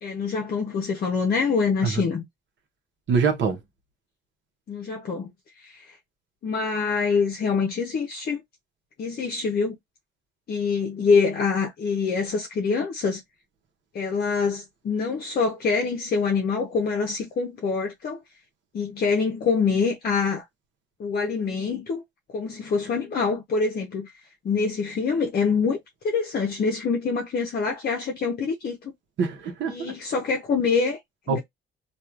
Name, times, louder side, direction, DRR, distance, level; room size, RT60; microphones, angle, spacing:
voice 1, 0.0-2.2 4.7-5.3 5.6-5.9 6.4-8.4 9.0-9.8 10.5-13.2 13.9-18.2 18.7-20.4 21.0-22.0 22.3-24.1 24.4-25.8 26.0-28.9 29.7-31.0 31.3-31.4, left 5 dB, 50° left, 0.7 m, -25 dB
voice 2, 3.1-3.6 29.2-29.9 31.3-31.4, right 5 dB, 70° right, 0.9 m, -24 dB
2.9 x 2.4 x 2.4 m
cardioid pair, 90°, 20 cm